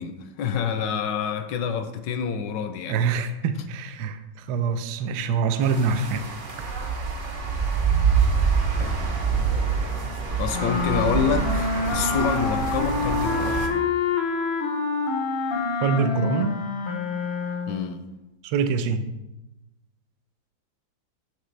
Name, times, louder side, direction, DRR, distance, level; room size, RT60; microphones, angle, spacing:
voice 1, 0.0-3.0 8.8-9.1 10.4-13.7 17.7-18.0, left 6 dB, 75° left, 8 dB, 1.2 m, -27 dB
voice 2, 2.9-6.2 6.6-6.7 15.8-16.6 18.4-19.0, right 5 dB, 75° right, 9 dB, 1.1 m, -25 dB
sound 1, 5.6-13.7, right 5 dB, 45° right, 0.7 m, -25 dB
sound 2, 10.5-17.9, left 4 dB, 55° left, 0.7 m, -27 dB
6.7 x 6.7 x 3.2 m, 0.95 s
omnidirectional pair, 2.0 m